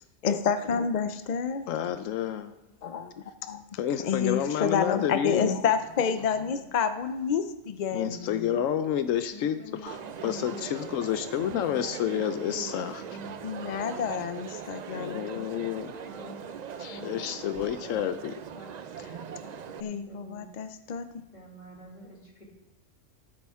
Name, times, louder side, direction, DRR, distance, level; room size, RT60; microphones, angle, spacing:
voice 1, 0.2-1.7 2.8-3.1 3.4-3.6 4.0-8.5 13.4-15.5 19.8-21.2, left 6 dB, 55° left, 10 dB, 0.5 m, -29 dB
voice 2, 1.7-2.5 3.8-5.6 7.9-10.0 10.2-13.0 14.9-16.0 16.8-18.3, left 10 dB, 85° left, 10 dB, 1.0 m, -29 dB
voice 3, 9.3-9.9 10.2-10.9 11.6-13.3 16.0-16.5 16.9-20.4 21.3-22.4, left 1 dB, 35° left, -2 dB, 2.6 m, -46 dB
Crowd, 9.9-19.8, right 7 dB, 60° right, 0.4 m, -41 dB
18.5 x 8.5 x 3.6 m, 0.99 s
omnidirectional pair, 1.3 m